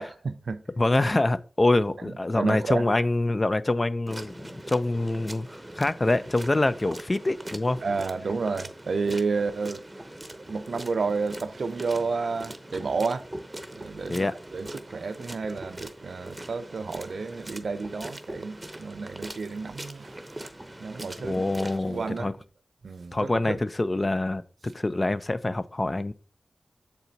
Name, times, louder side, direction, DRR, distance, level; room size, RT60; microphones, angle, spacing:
voice 1, 0.0-0.6 2.0-2.9 7.8-9.9 10.3-13.3 13.7-20.4 20.8-21.4 21.8-22.3 22.8-23.7, right 4 dB, 75° right, 0.5 m, -31 dB
voice 2, 0.8-7.8 14.1-14.3 21.2-22.3 23.1-26.1, left 2 dB, 35° left, 0.5 m, -25 dB
sound 1, 4.1-21.8, right 1 dB, 20° right, 0.8 m, -41 dB
6.8 x 4.3 x 4.0 m
cardioid pair, 45°, 0 cm